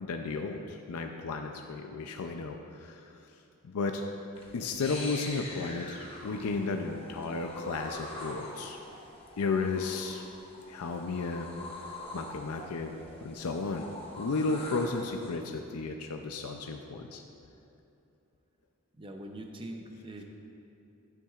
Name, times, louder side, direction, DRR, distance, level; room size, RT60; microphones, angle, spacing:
voice 1, 0.0-3.1 3.6-4.0 4.5-8.8 9.4-10.2 10.7-11.5 12.1-12.9 13.2-13.9 14.2-17.2, left 3 dB, 85° left, 4 dB, 0.5 m, -33 dB
sound 1, 4.4-15.4, left 2 dB, 25° left, 1.0 m, -45 dB
voice 2, 19.0-20.2, right 1 dB, 25° right, 3 dB, 0.6 m, -42 dB
11.5 x 9.1 x 2.4 m, 2.7 s
head